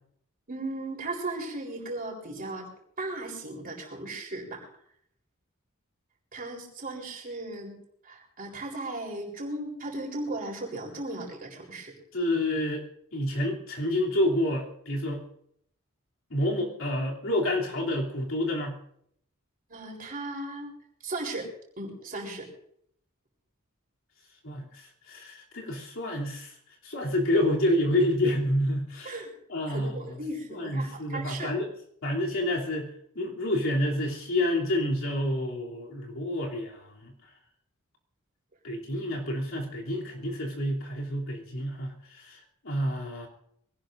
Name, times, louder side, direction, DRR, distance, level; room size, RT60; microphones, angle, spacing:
voice 1, 0.5-2.7 3.0-4.6 6.3-7.8 8.0-11.9 19.7-20.7 21.0-21.5 21.8-22.5 29.0-29.3 29.6-31.5, right 2 dB, 40° right, -1 dB, 4.0 m, -36 dB
voice 2, 12.1-12.8 13.1-15.2 16.3-18.8 24.4-26.5 26.8-29.2 29.5-30.2 30.5-31.7 32.0-32.9 33.1-37.1 38.6-43.3, left 1 dB, 65° left, -2 dB, 3.1 m, -28 dB
24.0 x 17.5 x 2.6 m, 0.69 s
head